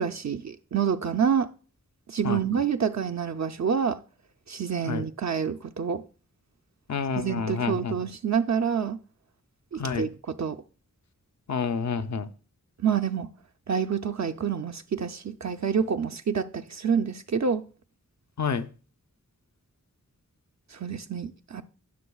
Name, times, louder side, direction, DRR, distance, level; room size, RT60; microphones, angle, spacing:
voice 1, 0.0-1.5 2.1-4.0 4.5-6.0 7.1-9.0 9.7-10.6 12.8-13.3 13.7-17.6 20.7-21.6, right 7 dB, 60° right, 0.5 m, -27 dB
voice 2, 6.9-8.0 9.8-10.1 11.5-12.3 18.4-18.7, left 5 dB, 60° left, 0.6 m, -29 dB
18.0 x 6.2 x 2.3 m
wide cardioid pair, 70°, 31 cm